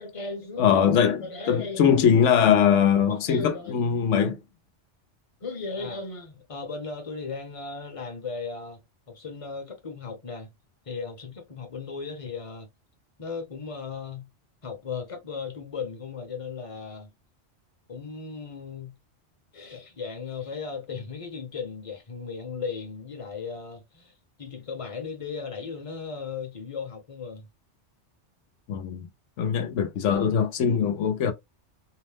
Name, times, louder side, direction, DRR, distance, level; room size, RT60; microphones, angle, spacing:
voice 1, 0.0-2.1 3.1-3.8 5.4-8.8 9.1-10.5 10.9-12.7 13.2-14.3 14.6-17.1 17.9-18.9 19.5-24.1 24.4-27.5, left 5 dB, 35° left, 0.7 m, -36 dB
voice 2, 0.6-4.4 28.7-29.1 29.4-31.3, left 7 dB, 85° left, 0.9 m, -22 dB
2.8 x 2.0 x 3.2 m
omnidirectional pair, 1.2 m